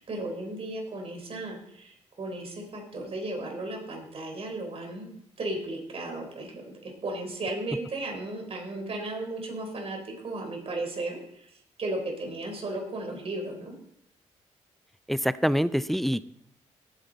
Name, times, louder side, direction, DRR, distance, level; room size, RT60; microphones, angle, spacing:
voice 1, 0.0-5.1 5.4-10.0 10.2-13.7, right 2 dB, 50° right, 3 dB, 4.0 m, -35 dB
voice 2, 15.1-16.3, equal, ahead, 16 dB, 0.5 m, -25 dB
18.0 x 8.9 x 4.1 m, 0.70 s
cardioid pair, 80°, 12 cm